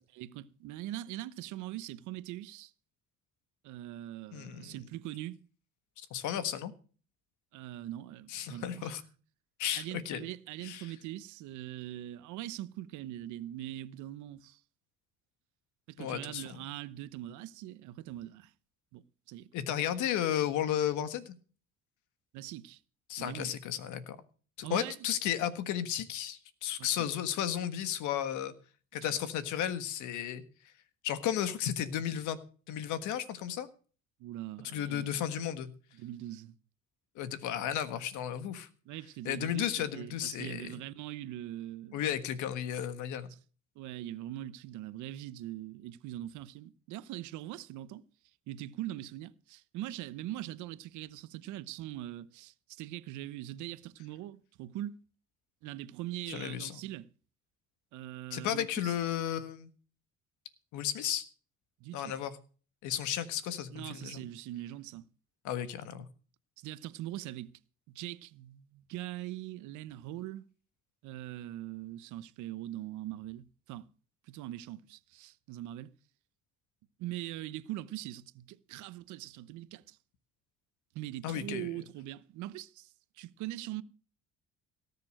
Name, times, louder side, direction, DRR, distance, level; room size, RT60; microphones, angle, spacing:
voice 1, 0.1-2.7 3.6-5.4 7.5-9.0 9.8-14.6 15.9-18.5 18.9-19.5 22.3-22.8 23.2-23.5 24.6-25.1 26.8-27.1 28.9-29.1 34.2-35.2 35.9-36.6 38.9-42.0 43.3-43.4 43.8-48.0 48.5-55.0 55.6-57.1 57.9-59.0 61.8-62.1 63.7-65.1 66.6-67.5 67.9-70.4 71.0-73.9 74.3-75.9 77.0-80.0 80.9-83.8, right 14 dB, 85° right, 0.9 m, -42 dB
voice 2, 4.3-4.7 6.0-6.7 8.3-9.0 9.6-10.2 10.6-10.9 16.0-16.6 19.5-21.3 23.1-24.2 24.6-28.5 28.9-30.4 31.0-32.4 32.7-33.7 34.6-35.7 37.1-38.7 39.2-40.7 41.9-43.3 56.3-56.8 58.3-59.7 60.7-61.2 61.9-62.3 62.8-64.2 65.4-66.1 81.2-81.7, left 10 dB, 85° left, 1.6 m, -34 dB
18.0 x 6.8 x 6.4 m
cardioid pair, 110°, 29 cm